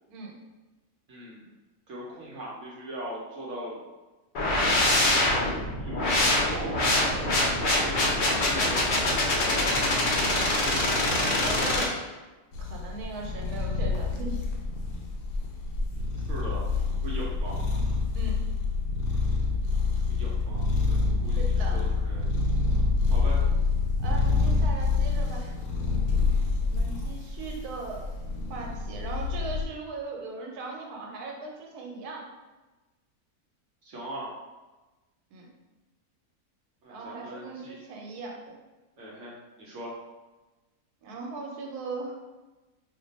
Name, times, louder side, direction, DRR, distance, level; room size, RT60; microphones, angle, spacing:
voice 1, 1.1-1.5 1.9-3.8 5.3-6.1 6.4-7.3 7.6-9.7 11.5-11.7 16.3-16.7 17.0-17.6 20.1-22.4 23.1-23.4 33.8-34.3 36.8-37.8 39.0-40.0, right 1 dB, 65° right, -5 dB, 0.8 m, -40 dB
sound 1, 4.3-11.8, left 1 dB, 60° left, 0.5 m, -24 dB
voice 2, 11.2-11.9 12.6-14.4 18.1-18.4 21.4-21.8 24.0-25.6 26.6-28.1 28.5-32.2 35.3-35.5 36.9-38.5 41.0-42.2, right 3 dB, 85° right, 0 dB, 1.2 m, -38 dB
sound 2, 12.5-29.6, left 4 dB, 75° left, 1.0 m, -27 dB
2.5 x 2.2 x 4.0 m, 1.2 s
omnidirectional pair, 1.6 m